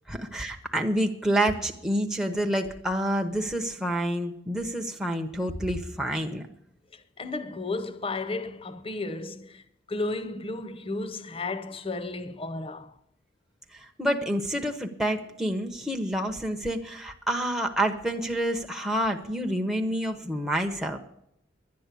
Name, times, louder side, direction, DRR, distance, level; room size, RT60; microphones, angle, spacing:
voice 1, 0.1-6.5 13.7-21.0, right 1 dB, 5° right, 0.8 m, -28 dB
voice 2, 6.9-13.0, left 2 dB, 30° left, 0.8 m, -33 dB
11.5 x 10.5 x 8.2 m
head